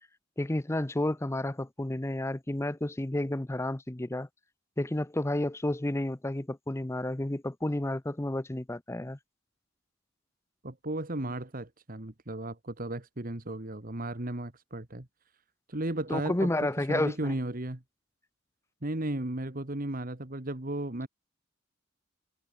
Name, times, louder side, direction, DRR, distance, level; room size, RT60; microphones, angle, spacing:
voice 1, 0.4-4.3 4.8-9.2 16.1-17.3, left 1 dB, 15° left, 0.6 m, -31 dB
voice 2, 10.6-15.1 15.7-17.8 18.8-21.1, right 1 dB, 45° right, 1.8 m, -35 dB
head